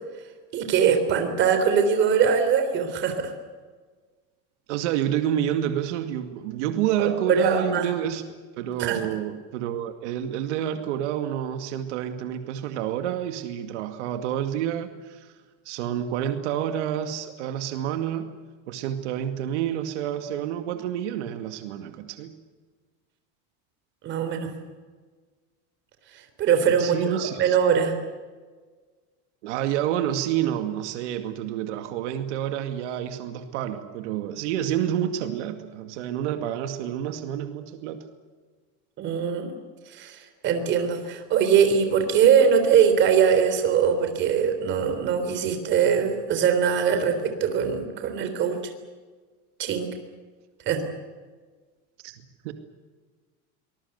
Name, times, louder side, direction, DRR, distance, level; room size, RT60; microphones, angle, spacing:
voice 1, 0.5-3.3 7.0-7.9 8.8-9.0 24.0-24.5 26.4-27.9 39.0-39.5 39.9-48.6 49.6-49.9 50.7-50.8, right 7 dB, 30° right, 7 dB, 3.6 m, -22 dB
voice 2, 4.7-8.2 8.6-15.3 15.7-18.4 18.7-22.3 26.8-27.6 29.4-38.0 52.0-52.5, right 10 dB, 85° right, 7 dB, 2.3 m, -29 dB
24.5 x 20.5 x 8.1 m, 1.4 s
cardioid pair, 175°, 35 cm